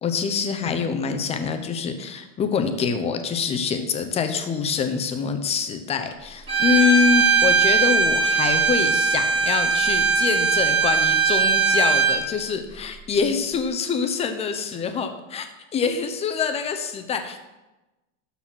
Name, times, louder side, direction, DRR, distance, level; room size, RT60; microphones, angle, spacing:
voice 1, 0.0-15.5 15.7-17.4, left 6 dB, 15° left, 7 dB, 0.6 m, -25 dB
Bowed string instrument, 6.5-12.2, right 5 dB, 15° right, 2.1 m, -20 dB
12.0 x 4.2 x 6.0 m, 1.1 s
supercardioid pair, 160°, 38 cm